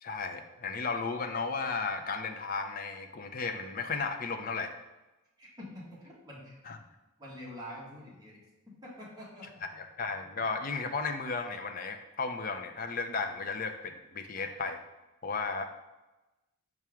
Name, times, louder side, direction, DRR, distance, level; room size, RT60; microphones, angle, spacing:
voice 1, 0.0-4.7 6.7-6.8 9.8-14.8 15.2-15.7, left 4 dB, 40° left, 7 dB, 0.4 m, -34 dB
voice 2, 5.4-6.6 7.2-9.6, equal, 20° right, -5 dB, 1.4 m, -46 dB
6.1 x 4.4 x 3.5 m, 1.1 s
head